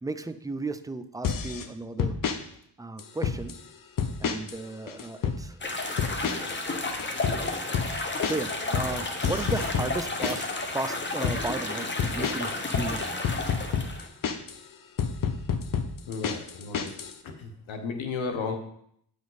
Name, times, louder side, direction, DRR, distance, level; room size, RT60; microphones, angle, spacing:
voice 1, 0.0-2.2 2.8-3.5 4.2-6.5 6.9-7.1 8.2-10.5 10.7-13.3, right 2 dB, 10° right, 10 dB, 0.3 m, -35 dB
sound 1, 1.2-1.7 2.0-2.4 3.0-3.6 4.0-4.6 4.9-5.4 6.0-6.6 6.8-10.6 11.0-11.4 12.0-14.6 15.0-17.1, left 7 dB, 45° left, 0.8 m, -29 dB
sound 2, 5.6-14.1, left 2 dB, 25° left, 1.1 m, -32 dB
voice 2, 16.0-16.9 17.2-18.6, left 4 dB, 85° left, 6 dB, 1.2 m, -34 dB
8.6 x 5.2 x 4.0 m, 0.70 s
cardioid pair, 90°, 45 cm